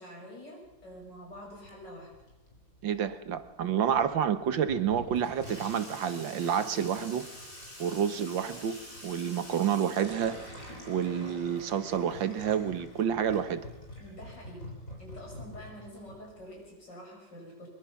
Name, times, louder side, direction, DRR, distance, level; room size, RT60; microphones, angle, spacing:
voice 1, 0.0-2.1 14.0-14.7 15.0-17.7, equal, 65° left, -1 dB, 8.1 m, -47 dB
Water tap faucet / Sink (filling or washing), 0.6-16.7, left 1 dB, 45° left, 4.7 m, -47 dB
voice 2, 2.8-7.2 7.8-8.8 9.0-10.4 10.9-13.6, right 8 dB, 80° right, 12 dB, 1.9 m, -29 dB
23.0 x 22.5 x 5.9 m, 1.1 s
omnidirectional pair, 2.0 m